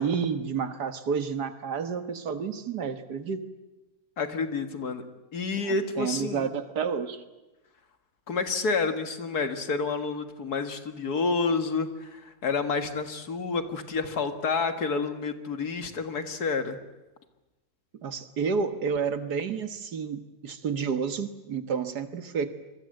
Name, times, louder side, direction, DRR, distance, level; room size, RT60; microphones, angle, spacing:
voice 1, 0.0-3.5 5.6-7.2 18.0-22.5, right 6 dB, 85° right, 9 dB, 2.1 m, -30 dB
voice 2, 4.2-5.0 5.3-6.5 8.3-16.8, left 4 dB, 75° left, 8 dB, 2.3 m, -29 dB
27.0 x 23.5 x 7.8 m, 1.1 s
omnidirectional pair, 1.7 m